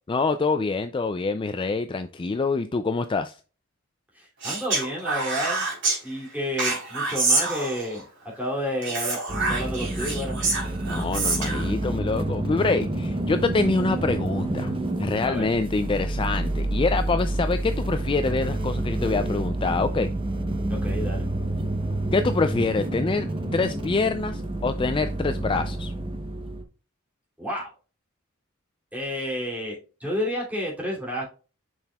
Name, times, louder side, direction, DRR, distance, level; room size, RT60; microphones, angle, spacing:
voice 1, 0.1-3.3 10.9-14.7 15.0-20.1 22.1-25.9, left 3 dB, 25° left, 0.3 m, -25 dB
voice 2, 4.1-5.7 6.0-8.1 8.4-10.6 15.2-15.4 20.7-21.3 27.4-27.7 28.9-31.2, equal, 5° right, 2.8 m, -30 dB
Speech, 4.4-6.0 6.6-8.0 8.8-11.7, right 3 dB, 60° right, 3.7 m, -26 dB
sound 1, 9.3-26.6, right 1 dB, 25° right, 0.9 m, -28 dB
6.9 x 6.0 x 2.3 m
head